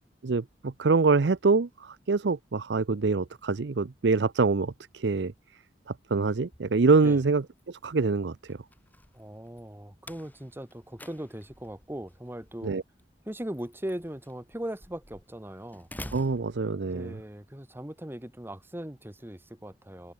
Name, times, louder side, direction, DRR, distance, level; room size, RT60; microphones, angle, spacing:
voice 1, 0.2-5.3 5.9-8.6 12.6-12.8 16.1-17.2, right 4 dB, 75° right, 0.6 m, -25 dB
Slam, 6.5-17.3, left 1 dB, 10° left, 3.7 m, -50 dB
voice 2, 9.1-12.8 13.3-15.9 16.8-20.1, right 1 dB, 15° right, 1.3 m, -39 dB
head